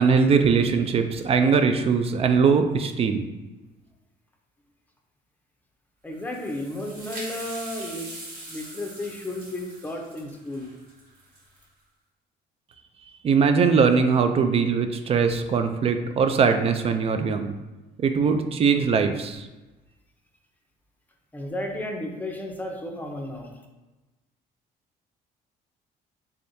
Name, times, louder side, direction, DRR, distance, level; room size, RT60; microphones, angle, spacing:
voice 1, 0.0-3.3 13.2-17.6 18.0-19.5, right 5 dB, 35° right, 7 dB, 0.4 m, -21 dB
voice 2, 6.0-8.1 8.5-10.7 21.3-23.5, left 1 dB, 10° left, 1 dB, 0.6 m, -33 dB
sound 1, 6.1-11.6, right 2 dB, 70° right, 1.4 m, -41 dB
3.5 x 3.4 x 2.7 m, 1.1 s
cardioid pair, 110°, 17 cm